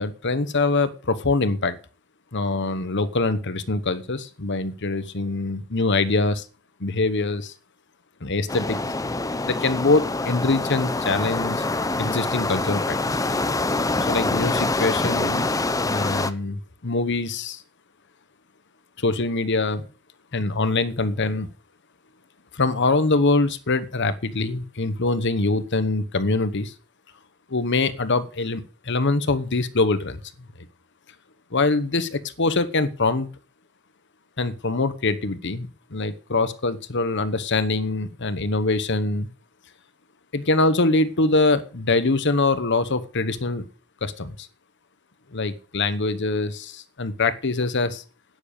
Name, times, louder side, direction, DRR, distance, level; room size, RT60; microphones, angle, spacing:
voice 1, 0.0-1.8 2.3-6.4 6.8-7.5 8.2-8.8 9.4-11.6 12.0-13.0 14.1-15.5 15.8-17.6 19.0-19.8 20.3-21.5 22.5-26.7 27.5-30.2 31.5-33.3 34.4-39.3 40.3-43.7 44.0-44.5 45.3-48.0, left 3 dB, 55° left, 13 dB, 1.1 m, -24 dB
sound 1, 8.5-16.3, left 2 dB, 15° left, 0.7 m, -25 dB
10.0 x 9.7 x 6.6 m, 0.38 s
head